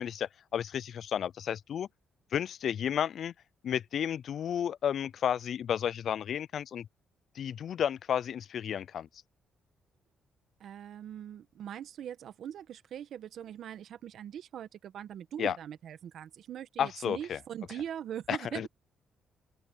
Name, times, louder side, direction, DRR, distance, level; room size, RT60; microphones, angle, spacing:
voice 1, 0.0-1.9 2.3-3.3 3.6-6.9 7.4-9.1 15.4-15.6 16.8-17.4 18.3-18.7, left 9 dB, 60° left, 0.3 m, -32 dB
voice 2, 10.6-18.7, right 10 dB, 70° right, 1.3 m, -41 dB
open air
cardioid pair, 90°, 0 cm